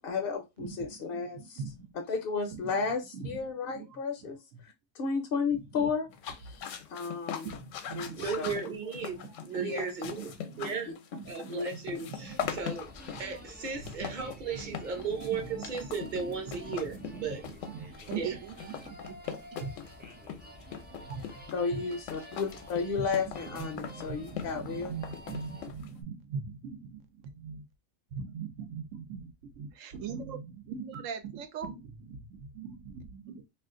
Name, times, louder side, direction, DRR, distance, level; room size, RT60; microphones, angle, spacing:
voice 1, 0.0-1.6 1.9-6.1 6.3-7.5 7.9-8.5 9.6-9.9 10.9-11.0 11.4-12.1 21.5-24.9, left 5 dB, 60° left, 0.7 m, -33 dB
voice 2, 0.6-2.0 2.5-2.8 3.1-3.5 3.7-3.9 4.2-4.6 5.5-5.8 7.4-8.8 9.1-12.6 13.1-13.2 14.0-14.3 14.5-14.9 15.2-19.2 19.6-19.7 21.1-21.3 23.0-27.6 28.1-33.4, right 6 dB, 85° right, 1.0 m, -42 dB
sound 1, 6.1-26.0, left 8 dB, 80° left, 0.9 m, -41 dB
voice 3, 8.1-10.3 10.6-10.9 11.2-12.9 13.2-17.4 18.1-18.4, right 5 dB, 45° right, 0.7 m, -35 dB
sound 2, 12.2-25.7, right 1 dB, 15° right, 0.3 m, -50 dB
2.5 x 2.4 x 3.6 m
omnidirectional pair, 1.3 m